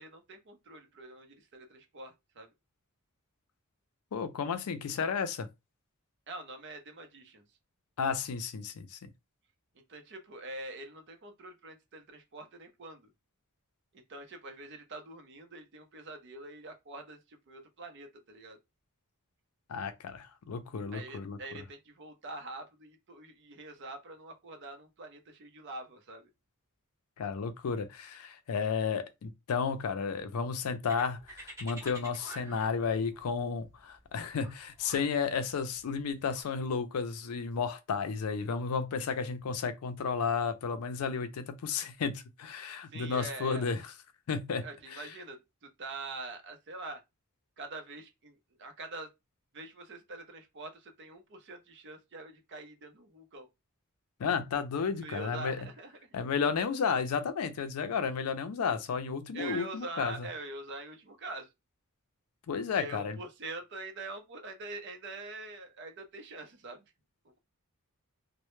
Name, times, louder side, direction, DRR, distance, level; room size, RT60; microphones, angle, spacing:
voice 1, 0.0-2.5 4.9-5.0 6.3-7.4 9.7-13.1 13.9-18.6 20.9-26.3 42.9-43.7 44.6-47.0 47.6-49.1 49.5-53.5 55.0-56.1 59.3-61.5 62.8-66.8, right 2 dB, 55° right, 0.6 m, -44 dB
voice 2, 4.1-5.5 8.0-9.1 19.7-21.4 27.2-43.9 44.3-44.6 44.9-45.1 54.2-55.6 56.1-60.3 62.5-63.2, left 5 dB, 80° left, 0.4 m, -32 dB
sound 1, 30.9-36.4, right 1 dB, 15° right, 0.7 m, -49 dB
2.1 x 2.0 x 3.0 m
head